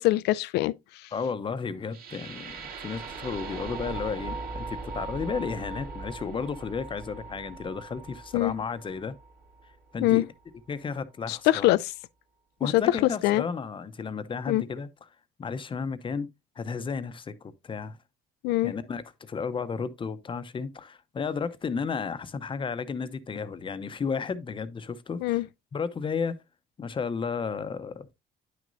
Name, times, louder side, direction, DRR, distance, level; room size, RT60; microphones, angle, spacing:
voice 1, 0.0-1.1 8.3-8.5 10.0-10.2 11.3-11.9 12.6-12.8 13.2-13.4 14.5-14.6 18.4-18.7 25.2-25.5, left 17 dB, 85° left, 0.4 m, -24 dB
voice 2, 1.1-9.2 9.9-10.2 10.7-11.7 12.6-14.9 15.4-16.3 16.6-18.0 18.6-25.4 25.7-26.4 26.8-28.1, left 5 dB, 30° left, 0.7 m, -33 dB
sound 1, 1.9-9.9, right 4 dB, 60° right, 2.6 m, -39 dB
9.6 x 6.2 x 2.6 m
cardioid pair, 110°, 17 cm